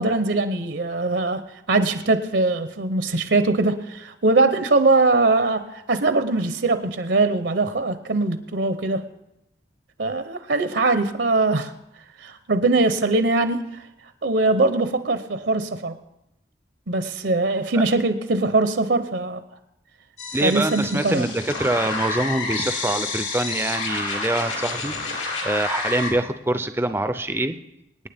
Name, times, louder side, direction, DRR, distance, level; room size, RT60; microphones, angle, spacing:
voice 1, 0.0-1.4 1.7-9.0 10.0-11.7 12.2-13.8 14.2-15.9 16.9-19.4 20.4-21.3, right 3 dB, 70° right, 10 dB, 0.8 m, -21 dB
sound 1, 20.2-26.1, left 3 dB, 90° left, 3.3 m, -29 dB
voice 2, 20.3-24.9 25.4-27.6, right 1 dB, 10° right, 10 dB, 0.5 m, -24 dB
25.5 x 9.4 x 3.5 m, 0.85 s
head